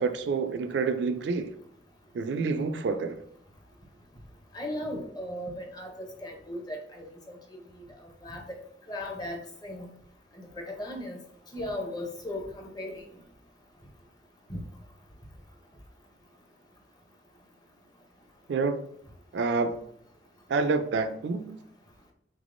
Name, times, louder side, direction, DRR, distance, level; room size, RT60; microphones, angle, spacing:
voice 1, 0.0-1.5 2.1-3.2 18.5-18.9 19.3-19.9 20.5-21.6, right 4 dB, 75° right, 0.3 m, -28 dB
voice 2, 4.5-6.8 7.3-7.4 8.2-8.6 8.9-9.9 10.6-11.2 11.5-13.0 14.5-14.6, left 1 dB, 25° left, 0.6 m, -36 dB
3.6 x 3.3 x 2.5 m
head